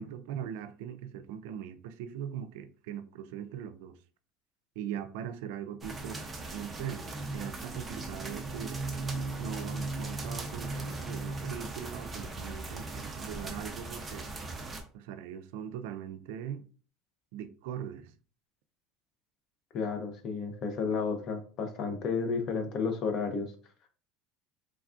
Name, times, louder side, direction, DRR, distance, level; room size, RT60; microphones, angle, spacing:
voice 1, 0.0-4.0 4.8-6.3 6.5-7.0 7.3-8.8 9.4-14.3 14.9-16.6 17.3-18.1, right 9 dB, 80° right, 0.3 m, -40 dB
sound 1, 5.8-14.8, right 2 dB, 15° right, 0.5 m, -38 dB
voice 2, 19.7-23.5, left 5 dB, 45° left, 0.6 m, -32 dB
3.2 x 2.4 x 2.4 m
cardioid pair, 140°, 0 cm